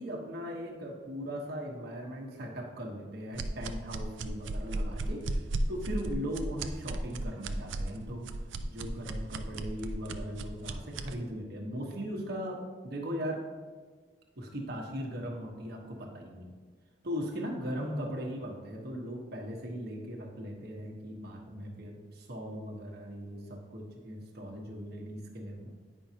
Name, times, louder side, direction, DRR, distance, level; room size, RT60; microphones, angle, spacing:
voice 1, 0.0-5.3 5.7-8.4 8.7-13.4 14.4-16.5 17.0-25.7, equal, 60° right, 0 dB, 1.1 m, -38 dB
sound 1, 3.3-11.1, right 2 dB, 85° right, 0.4 m, -35 dB
9.3 x 5.5 x 2.8 m, 1.5 s
head